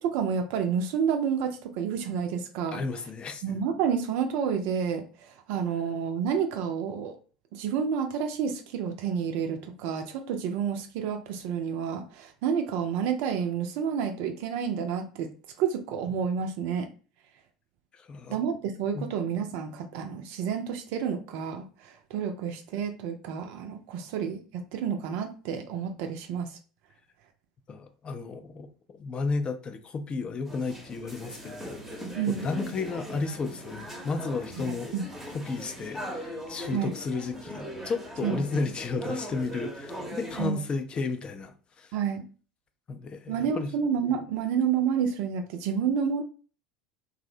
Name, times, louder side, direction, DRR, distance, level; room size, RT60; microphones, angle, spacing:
voice 1, 0.0-2.8 3.4-7.2 7.5-15.3 15.6-16.9 18.3-26.6 32.2-32.5 34.7-35.0 36.7-36.9 38.2-38.4 40.4-40.6 41.9-42.2 43.3-46.2, right 7 dB, 55° right, 0.4 m, -29 dB
voice 2, 2.7-3.4 18.0-18.4 18.9-19.1 27.7-28.7 29.0-31.8 32.3-34.9 35.3-41.9 42.9-43.7, left 4 dB, 30° left, 0.4 m, -33 dB
sound 1, 30.4-40.5, equal, 10° right, 0.7 m, -40 dB
2.5 x 2.0 x 2.6 m
figure-of-eight pair, 70°, 3 cm